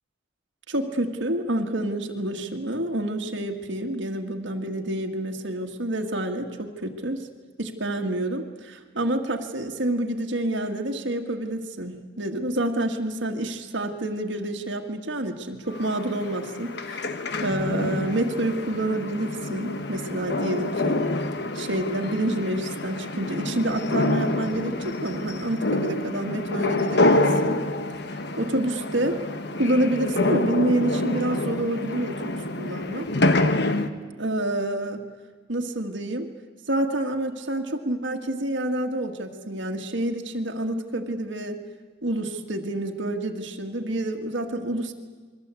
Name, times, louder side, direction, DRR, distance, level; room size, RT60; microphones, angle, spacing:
voice 1, 0.7-7.3 7.6-17.1 17.4-21.1 21.5-27.6 28.4-29.2 29.6-33.1 34.2-35.0 35.5-36.3 36.7-41.6 42.0-44.9, right 1 dB, 65° right, 3 dB, 1.8 m, -28 dB
sound 1, 15.7-33.9, left 2 dB, 55° left, 1.2 m, -27 dB
29.0 x 22.0 x 8.3 m, 1.4 s
head